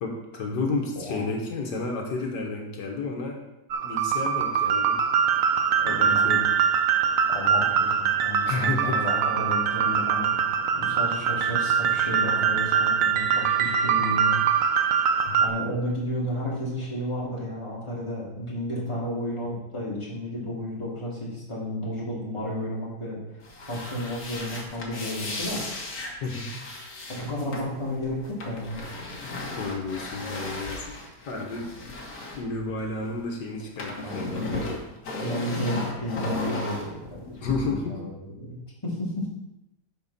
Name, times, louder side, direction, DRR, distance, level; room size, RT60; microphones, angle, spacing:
voice 1, 0.0-3.4 3.8-5.0 5.8-6.5 8.5-9.0 14.0-14.1 15.3-15.4 26.2-26.5 29.6-31.0 31.3-31.7 32.4-34.4 37.4-38.0, left 3 dB, 85° left, 1 dB, 1.8 m, -31 dB
voice 2, 1.0-1.3 5.8-6.4 7.3-10.3 10.7-14.4 15.4-23.4 23.7-25.7 27.1-28.9 34.0-38.1 38.4-39.3, equal, 15° left, -6 dB, 2.5 m, -32 dB
sound 1, 3.7-15.5, right 7 dB, 60° right, 1.0 m, -23 dB
sound 2, 23.4-33.2 33.5-37.5, left 2 dB, 60° left, 1.9 m, -35 dB
12.0 x 4.4 x 4.1 m, 0.92 s
omnidirectional pair, 1.8 m